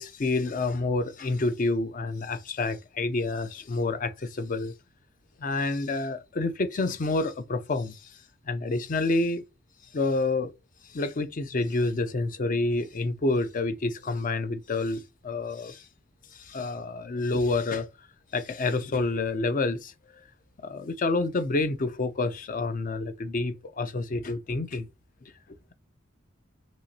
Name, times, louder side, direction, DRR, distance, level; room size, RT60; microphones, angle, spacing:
voice 1, 0.0-4.7 5.4-8.0 8.5-9.4 9.9-10.5 10.9-15.8 16.3-17.9 18.3-19.9 20.6-24.9, left 3 dB, 45° left, 0.5 m, -28 dB
6.1 x 2.8 x 2.7 m
head